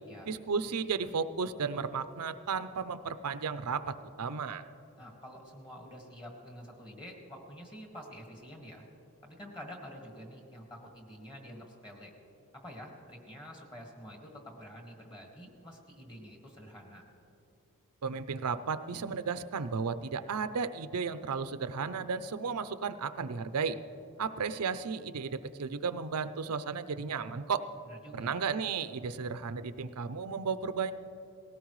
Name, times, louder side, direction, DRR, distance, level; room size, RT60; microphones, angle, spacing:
voice 1, 0.3-4.7 18.0-23.8 24.2-27.6 28.1-30.9, right 5 dB, 80° right, 13 dB, 0.6 m, -34 dB
voice 2, 5.0-8.8 9.2-12.1 12.6-17.0 27.9-28.3, equal, 20° left, 1 dB, 1.9 m, -48 dB
19.0 x 17.0 x 3.2 m, 2.8 s
head